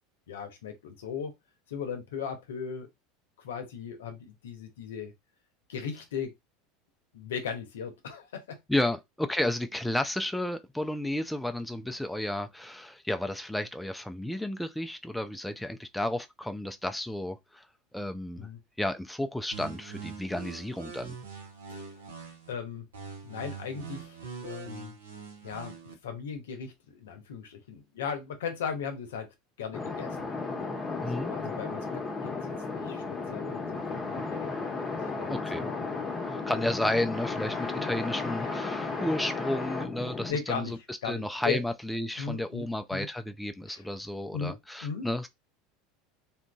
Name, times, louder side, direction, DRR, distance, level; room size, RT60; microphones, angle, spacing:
voice 1, 0.3-1.3 1.7-2.9 3.4-5.1 5.7-6.3 7.1-8.6 18.4-18.6 21.7-22.0 22.5-22.9 23.2-24.9 25.4-25.8 26.0-29.3 29.6-30.3 31.1-34.5 34.9-36.1 40.3-40.8 41.0-41.6 42.2-42.6 42.9-43.1 43.7-43.8 44.3-44.6 44.8-45.1, left 6 dB, 80° left, 0.7 m, -37 dB
voice 2, 8.7-17.7 17.9-18.5 18.8-21.1 31.0-31.3 35.3-35.7 36.3-45.3, left 1 dB, 5° left, 0.3 m, -32 dB
sound 1, 19.5-22.5 22.9-25.9, right 6 dB, 85° right, 0.8 m, -43 dB
sound 2, 29.7-40.3, left 3 dB, 25° left, 0.8 m, -34 dB
2.8 x 2.5 x 2.2 m
hypercardioid pair, 85°, 0 cm